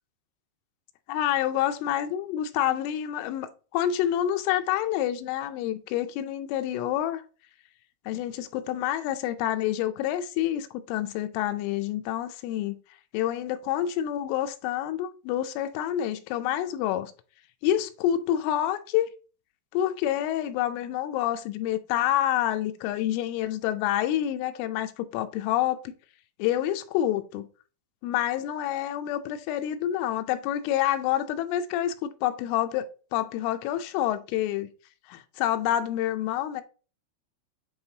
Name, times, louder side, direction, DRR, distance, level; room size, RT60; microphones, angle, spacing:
voice 1, 1.1-7.2 8.1-12.8 13.1-17.1 17.6-19.1 19.7-25.9 26.4-27.5 28.0-34.7 35.1-36.6, left 11 dB, 85° left, 3.0 m, -28 dB
9.7 x 3.9 x 2.8 m
omnidirectional pair, 5.6 m